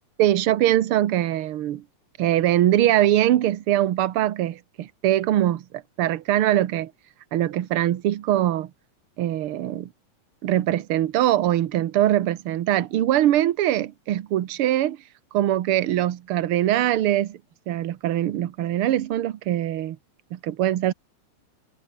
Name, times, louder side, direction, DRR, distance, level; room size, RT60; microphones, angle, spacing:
voice 1, 0.2-1.8 2.2-5.6 6.0-6.9 7.3-8.7 9.2-9.9 10.4-15.0 15.3-17.4 17.7-20.0 20.3-20.9, right 13 dB, 60° right, 1.5 m, -22 dB
omnidirectional pair, 3.7 m